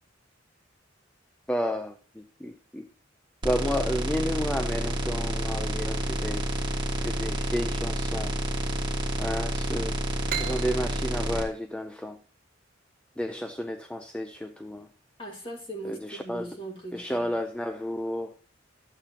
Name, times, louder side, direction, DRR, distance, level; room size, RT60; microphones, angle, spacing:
voice 1, 1.5-2.9 3.4-6.5 7.0-8.4 9.2-10.0 10.3-12.2 13.2-14.9 15.9-16.5 16.9-18.3, equal, 5° left, 0.4 m, -32 dB
sound 1, 3.4-11.4, right 1 dB, 25° right, 1.7 m, -29 dB
sound 2, 10.3-13.7, right 8 dB, 45° right, 1.0 m, -38 dB
voice 2, 15.2-17.3, right 1 dB, 30° left, 2.0 m, -39 dB
12.0 x 8.1 x 2.8 m
head